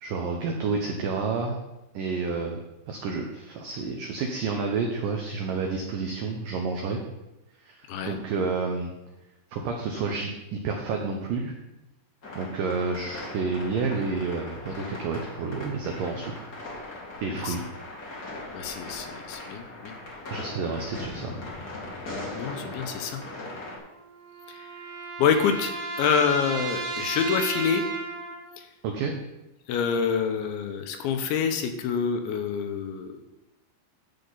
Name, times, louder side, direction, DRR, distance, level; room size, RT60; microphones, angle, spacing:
voice 1, 0.0-1.6 1.9-2.6 2.9-7.0 7.6-8.9 9.5-11.5 12.4-16.5 17.2-17.6 20.3-21.4 28.8-29.1, right 4 dB, 90° right, 1 dB, 1.9 m, -30 dB
sound 1, 12.2-23.8, left 2 dB, 60° left, 1.0 m, -39 dB
voice 2, 18.5-20.0 22.3-23.2 24.5-24.7 25.2-27.8 28.6-28.7 29.7-33.2, left 6 dB, 85° left, 7 dB, 3.2 m, -27 dB
sound 2, 23.8-28.6, right 3 dB, 70° right, 3.0 m, -34 dB
10.5 x 7.9 x 4.0 m, 0.96 s
omnidirectional pair, 5.2 m